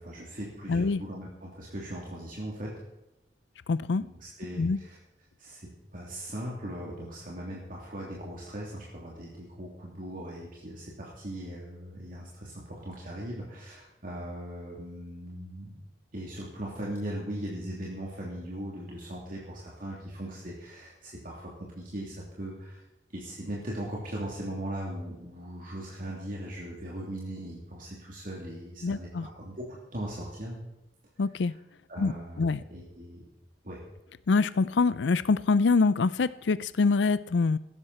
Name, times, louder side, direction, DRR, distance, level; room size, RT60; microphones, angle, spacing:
voice 1, 0.0-2.7 4.2-5.0 5.4-5.6 5.9-15.7 16.1-22.8 23.1-30.6 31.5-31.6 31.9-32.4 32.7-33.2 33.6-33.8, right 1 dB, 50° right, -4 dB, 3.1 m, -39 dB
voice 2, 0.7-1.0 3.7-4.0 4.6-4.8 28.8-29.3 31.2-31.5 32.0-32.6 34.3-37.6, left 4 dB, 75° left, 17 dB, 0.5 m, -25 dB
16.5 x 12.5 x 4.3 m, 0.92 s
head